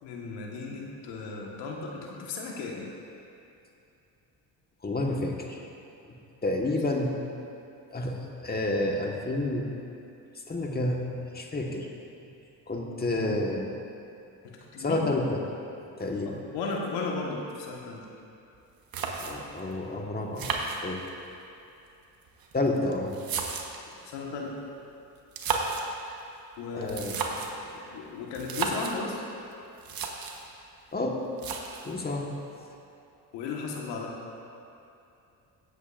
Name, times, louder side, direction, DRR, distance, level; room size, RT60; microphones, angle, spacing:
voice 1, 0.0-2.8 14.4-15.0 16.2-18.1 23.9-24.6 26.6-29.2 33.3-34.1, left 4 dB, 85° left, -1 dB, 1.6 m, -36 dB
voice 2, 4.8-5.6 6.4-7.1 7.9-8.2 8.4-9.7 10.5-11.1 11.3-11.9 12.7-13.6 14.8-15.4 16.0-16.4 19.2-20.5 20.8-21.0 22.5-23.1 26.7-27.2 27.7-27.8 30.9-31.2 31.8-32.3, left 2 dB, 20° left, 0 dB, 1.5 m, -29 dB
sound 1, 18.5-18.6 18.9-19.6 20.4-21.3 22.2-23.9 25.2-25.9 26.8-27.6 28.3-29.0 29.5-29.6 29.8-30.5 31.4-32.0, right 5 dB, 55° right, 1.3 m, -33 dB
18.0 x 8.2 x 2.6 m, 2.7 s
supercardioid pair, 75°, 42 cm